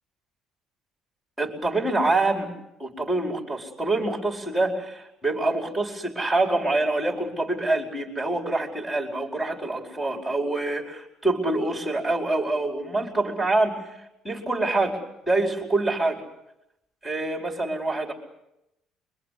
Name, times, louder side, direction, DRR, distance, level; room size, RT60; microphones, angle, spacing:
voice 1, 1.4-2.5 2.8-14.0 14.2-15.0 15.3-16.2 17.0-18.1, right 2 dB, ahead, 0 dB, 4.8 m, -26 dB
26.5 x 24.5 x 8.4 m, 0.85 s
cardioid pair, 145°, 0 cm